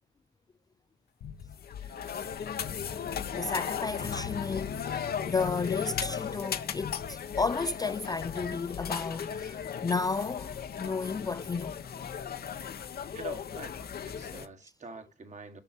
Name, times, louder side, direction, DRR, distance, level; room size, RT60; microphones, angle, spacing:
sound 1, 1.2-9.5, left 9 dB, 80° left, 0.9 m, -46 dB
sound 2, 1.5-14.5, left 7 dB, 50° left, 1.0 m, -36 dB
voice 1, 3.3-11.8, left 4 dB, 20° left, 0.3 m, -33 dB
voice 2, 13.1-13.8 14.0-15.6, right 4 dB, 35° right, 1.7 m, -45 dB
7.0 x 5.7 x 4.5 m
cardioid pair, 90°, 20 cm